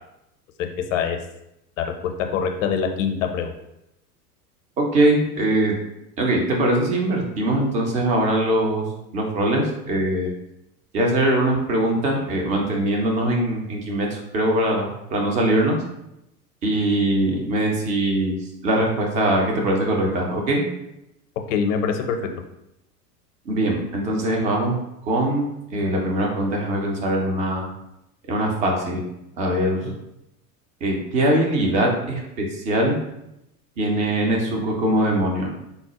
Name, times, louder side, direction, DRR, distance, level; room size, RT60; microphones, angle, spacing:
voice 1, 0.6-1.2 1.8-3.5 21.5-22.3, left 6 dB, 50° left, 5 dB, 0.6 m, -24 dB
voice 2, 4.8-5.8 6.2-8.8 9.1-10.3 10.9-15.8 16.6-18.4 18.6-20.6 23.5-24.8 25.0-27.7 28.3-29.0 29.4-29.9 30.8-33.0 33.8-35.5, right 1 dB, 15° right, 0 dB, 0.3 m, -22 dB
3.9 x 2.1 x 2.8 m, 0.85 s
figure-of-eight pair, 90°, 48 cm